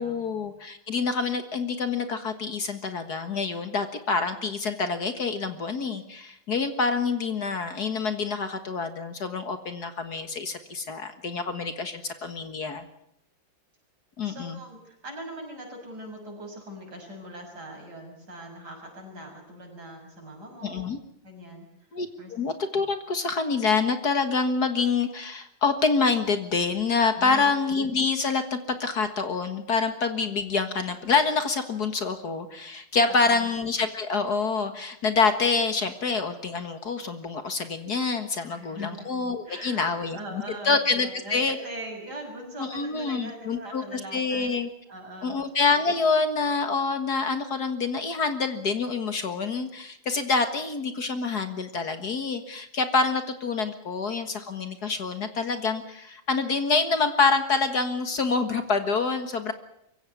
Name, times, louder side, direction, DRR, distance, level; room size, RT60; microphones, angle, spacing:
voice 1, 0.0-12.9 14.2-14.6 20.6-21.0 21.9-41.6 42.6-44.7 45.2-59.5, left 4 dB, 55° left, 9 dB, 2.0 m, -26 dB
voice 2, 14.2-20.9 21.2-21.7 22.2-22.3 27.2-27.6 33.1-33.5 38.5-39.1 39.5-44.5 44.9-45.4, equal, 55° right, 2 dB, 7.2 m, -41 dB
23.5 x 16.5 x 9.5 m, 0.76 s
omnidirectional pair, 2.2 m